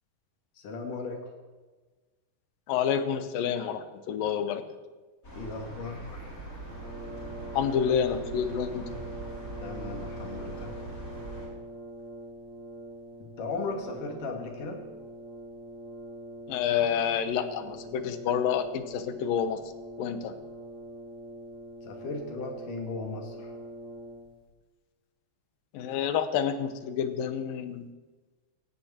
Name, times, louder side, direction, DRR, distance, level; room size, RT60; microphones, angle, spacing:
voice 1, 0.6-1.3 5.4-6.2 9.6-10.7 13.2-14.8 21.8-23.5, left 3 dB, 70° left, 3 dB, 3.7 m, -37 dB
voice 2, 2.7-4.6 7.5-8.9 16.5-19.6 20.0-20.3 25.7-27.9, left 8 dB, 85° left, 10 dB, 2.8 m, -28 dB
sound 1, 5.2-11.5, right 2 dB, 25° left, 4.7 m, -42 dB
Brass instrument, 6.7-24.5, right 1 dB, 20° right, 4.4 m, -43 dB
17.0 x 15.5 x 4.4 m, 1.3 s
omnidirectional pair, 3.9 m